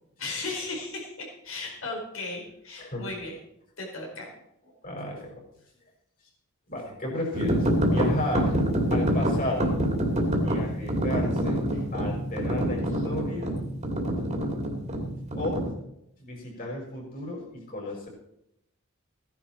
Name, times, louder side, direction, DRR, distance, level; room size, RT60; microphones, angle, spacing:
voice 1, 0.2-3.4 3.8-4.3 4.6-4.7 11.7-11.8 13.0-13.1, left 3 dB, 65° left, 1 dB, 4.6 m, -36 dB
voice 2, 4.8-5.4 6.7-8.5 8.9-9.7 10.4-11.6 11.9-13.6 15.3-15.7 16.2-18.1, left 1 dB, 40° left, -1 dB, 5.6 m, -33 dB
sound 1, 7.3-15.7, equal, 30° right, 2.5 m, -26 dB
16.5 x 10.5 x 4.5 m, 0.79 s
head